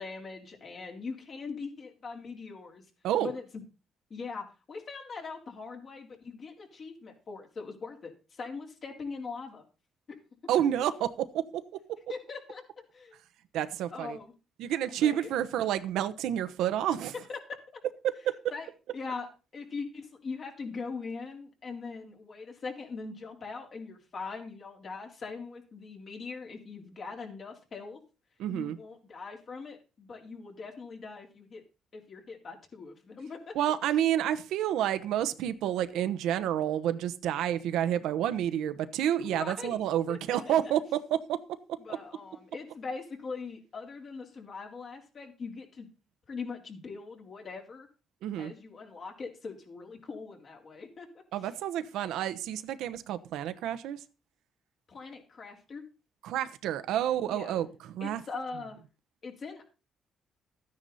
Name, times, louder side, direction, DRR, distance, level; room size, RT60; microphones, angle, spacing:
voice 1, 0.0-2.9 3.2-3.6 4.1-9.6 10.1-10.2 10.6-10.7 12.1-13.2 13.9-14.3 14.9-15.4 17.3-17.8 18.5-18.7 18.9-28.0 28.5-31.6 31.9-33.6 39.2-39.8 40.1-40.2 40.5-40.6 41.8-45.9 46.3-47.9 48.4-51.2 54.9-55.8 57.3-57.5 58.0-58.8 59.2-59.7, left 4 dB, 50° left, 3.7 m, -41 dB
voice 2, 10.5-11.1 11.3-11.6 13.5-14.2 14.6-17.1 18.0-18.3 28.4-28.8 33.5-41.4 48.2-48.5 51.3-54.0 56.2-58.2, right 11 dB, 85° right, 1.0 m, -29 dB
13.0 x 9.7 x 4.2 m
cardioid pair, 90°, 0 cm